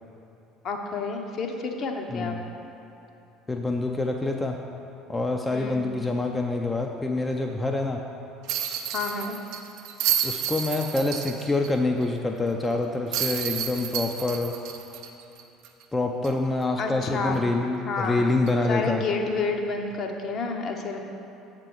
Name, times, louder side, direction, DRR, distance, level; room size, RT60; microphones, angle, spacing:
voice 1, 0.6-2.4 5.5-5.9 8.9-9.4 16.8-17.4 17.9-18.2 18.7-21.0, left 4 dB, 45° left, 3 dB, 0.7 m, -29 dB
voice 2, 2.1-2.4 3.5-4.6 5.1-8.0 10.2-14.6 15.9-19.0, left 2 dB, 15° left, 2 dB, 0.4 m, -26 dB
sound 1, 8.5-11.7 12.0-12.1 13.1-15.8 16.2-16.3 18.5-18.7, right 10 dB, 55° right, 0.5 m, -30 dB
7.3 x 3.7 x 6.5 m, 2.9 s
figure-of-eight pair, 60°, 0 cm